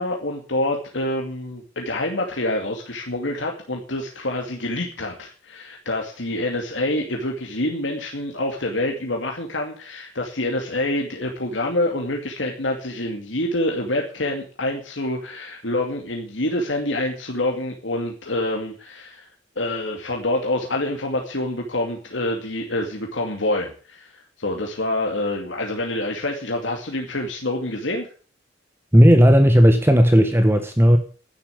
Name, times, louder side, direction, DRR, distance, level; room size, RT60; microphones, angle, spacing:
voice 1, 0.0-19.3 19.6-28.1, left 1 dB, 75° left, 2.4 m, -26 dB
voice 2, 28.9-31.0, equal, 15° right, 1.4 m, -14 dB
11.5 x 10.0 x 8.4 m
head